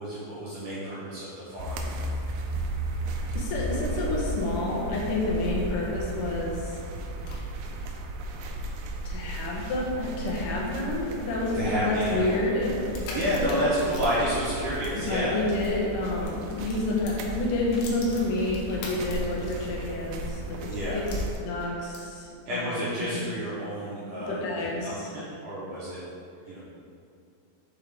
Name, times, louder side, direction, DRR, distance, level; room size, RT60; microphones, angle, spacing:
voice 1, 0.0-1.9 11.5-12.4 13.1-15.4 20.7-21.1 22.5-26.0 26.5-26.6, equal, 75° right, -10 dB, 1.9 m, -30 dB
sound 1, 1.6-21.4, right 1 dB, 90° right, 2.7 m, -35 dB
voice 2, 3.4-6.8 9.1-13.7 14.9-21.0 21.4-23.2 24.1-25.1, left 2 dB, 70° left, -4 dB, 2.2 m, -29 dB
sound 2, 6.7-15.7 16.1-20.0 20.3-20.4 21.0-22.3, left 3 dB, 85° left, 3.1 m, -46 dB
6.8 x 4.5 x 3.4 m, 2.4 s
omnidirectional pair, 4.8 m